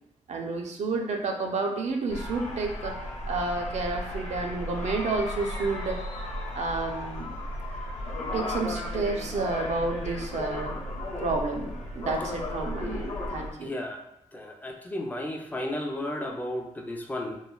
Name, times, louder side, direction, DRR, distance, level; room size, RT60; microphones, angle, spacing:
voice 1, 0.3-3.0 3.3-6.0 6.6-7.4 8.3-10.8 11.2-13.7, right 3 dB, 60° right, 2 dB, 0.4 m, -30 dB
sound 1, 2.1-13.5, left 1 dB, 60° left, 0.6 m, -35 dB
voice 2, 13.6-14.0 14.3-17.4, left 1 dB, 15° left, 2 dB, 0.4 m, -33 dB
3.0 x 2.2 x 2.2 m, 0.81 s
cardioid pair, 75°, 13 cm